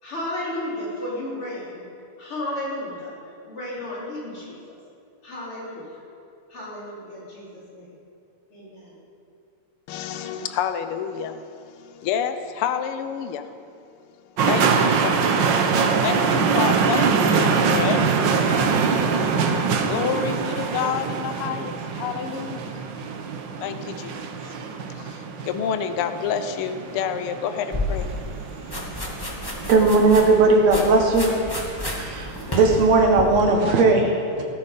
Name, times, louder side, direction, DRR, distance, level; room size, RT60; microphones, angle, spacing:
voice 1, 0.0-1.8 2.2-3.1 3.4-4.8 5.2-6.0 6.5-7.9 8.5-9.0, left 1 dB, 45° left, -7 dB, 4.6 m, -33 dB
voice 2, 9.9-13.5 14.5-15.3 16.0-18.5 19.9-22.8 23.6-24.2 24.4-24.5 24.9-28.3, left 8 dB, 70° left, 9 dB, 1.3 m, -29 dB
sound 1, 14.4-33.2, right 5 dB, 90° right, 1.0 m, -24 dB
sound 2, 27.7-33.4, left 1 dB, 10° left, 1.4 m, -31 dB
voice 3, 29.7-31.3 31.8-34.4, right 3 dB, 65° right, 2 dB, 2.7 m, -18 dB
17.0 x 13.5 x 5.4 m, 2.5 s
omnidirectional pair, 3.4 m